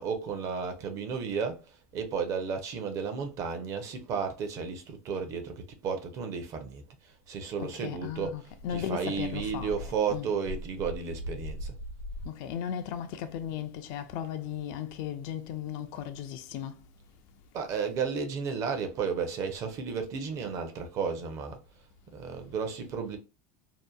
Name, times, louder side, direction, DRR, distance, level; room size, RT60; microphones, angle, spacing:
voice 1, 0.0-11.8 17.5-21.6 22.1-23.2, right 6 dB, 40° right, 0.6 m, -33 dB
voice 2, 7.6-10.3 12.2-16.8, left 9 dB, 55° left, 0.3 m, -36 dB
Dog, 8.1-12.3, equal, 85° left, 0.9 m, -40 dB
2.7 x 2.1 x 2.3 m
supercardioid pair, 135°, 8 cm